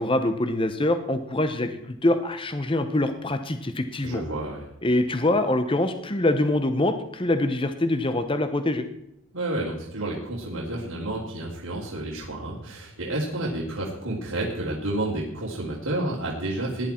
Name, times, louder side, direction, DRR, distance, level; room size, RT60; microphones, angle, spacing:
voice 1, 0.0-4.2 4.8-8.8, left 1 dB, 25° left, 9 dB, 0.9 m, -24 dB
voice 2, 4.0-4.7 9.3-16.9, right 1 dB, 75° right, -6 dB, 3.3 m, -30 dB
18.5 x 11.0 x 4.5 m, 0.82 s
head